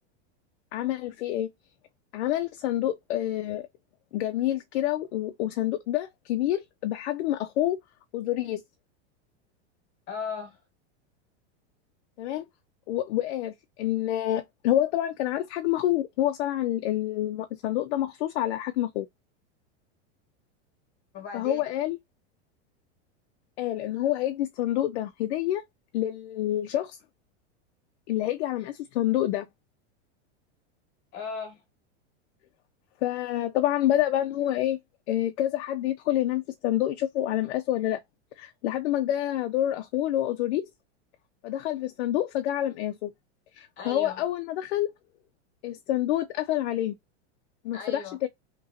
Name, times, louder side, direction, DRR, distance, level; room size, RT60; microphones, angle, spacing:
voice 1, 0.7-1.5 2.1-3.6 4.1-7.8 8.1-8.6 12.2-12.4 12.9-19.1 21.3-22.0 23.6-25.6 25.9-27.0 28.1-29.5 33.0-34.8 35.1-38.0 38.4-40.7 41.4-43.1 43.5-44.9 45.6-46.9 47.6-48.3, left 13 dB, 70° left, 0.5 m, -27 dB
voice 2, 10.1-10.6 21.1-21.6 31.1-31.6 43.8-44.2 47.7-48.2, left 4 dB, 30° left, 1.3 m, -36 dB
2.9 x 2.7 x 2.6 m
supercardioid pair, 150°, 34 cm